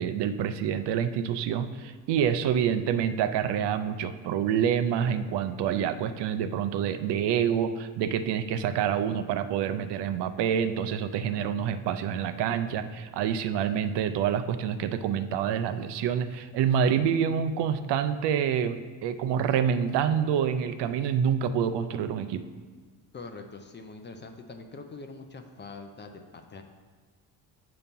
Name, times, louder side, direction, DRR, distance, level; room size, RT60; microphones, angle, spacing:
voice 1, 0.0-22.4, right 8 dB, 75° right, 10 dB, 0.5 m, -27 dB
voice 2, 23.1-26.6, left 3 dB, 25° left, 5 dB, 0.5 m, -43 dB
8.2 x 2.9 x 5.2 m, 1.5 s
cardioid pair, 120°, 42 cm